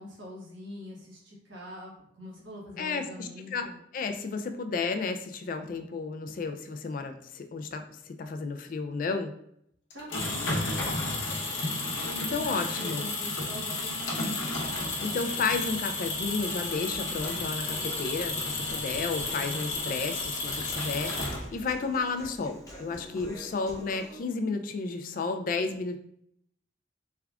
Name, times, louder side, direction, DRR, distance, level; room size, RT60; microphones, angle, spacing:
voice 1, 0.0-3.8 9.9-11.6 11.8-14.3, equal, 75° right, -4 dB, 1.3 m, -44 dB
voice 2, 2.8-3.7 3.9-9.3 12.3-13.1 15.0-21.2 21.5-26.0, left 4 dB, 45° left, 7 dB, 0.3 m, -32 dB
sound 1, 9.9-21.7, left 3 dB, 85° left, 0.9 m, -32 dB
Human voice, 16.2-24.2, equal, 20° left, 0.7 m, -47 dB
3.4 x 2.3 x 3.4 m, 0.71 s
head